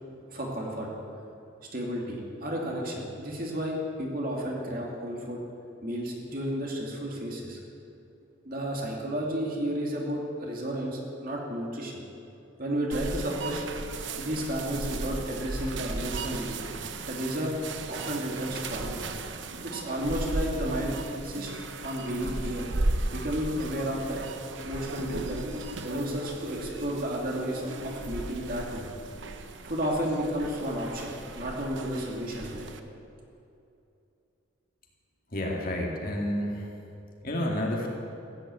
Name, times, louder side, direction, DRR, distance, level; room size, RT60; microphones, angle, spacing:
voice 1, 0.3-0.9 1.7-5.4 5.8-7.6 8.5-11.9 12.6-13.6 14.2-16.5 17.1-17.5 17.9-19.0 19.6-21.5 21.8-22.7 23.1-24.3 24.6-25.4 25.8-28.9 29.6-32.7, equal, 45° right, -1 dB, 2.6 m, -32 dB
sound 1, 12.9-32.8, right 2 dB, 65° right, 0.9 m, -36 dB
voice 2, 35.3-36.6 37.2-37.9, left 1 dB, 45° left, -1 dB, 2.4 m, -30 dB
15.5 x 10.0 x 8.5 m, 2.7 s
head